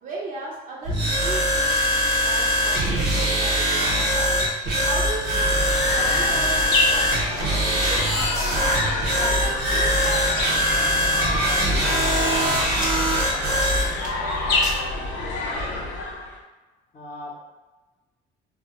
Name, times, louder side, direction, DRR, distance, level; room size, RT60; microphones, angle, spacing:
voice 1, 0.0-5.6 5.9-10.0, right 3 dB, 50° right, -4 dB, 0.4 m, -37 dB
sound 1, 0.8-0.9 1.2-1.3 1.9-2.2 2.5-3.3 4.0-4.9 5.3-6.0 6.5-6.6 6.8-8.8 9.8-10.8 11.5-11.7 12.0-13.1 13.5-14.3 14.6-14.8, equal, 5° right, 0.6 m, -37 dB
sound 2, 0.8-13.9, equal, 85° right, 0.8 m, -22 dB
sound 3, 4.8-16.4, left 2 dB, 85° left, 0.5 m, -28 dB
voice 2, 13.8-14.1 14.7-14.8 15.1-16.0 16.9-17.5, left 1 dB, 45° left, -5 dB, 0.5 m, -41 dB
2.1 x 2.0 x 2.9 m, 1.2 s
cardioid pair, 110°, 17 cm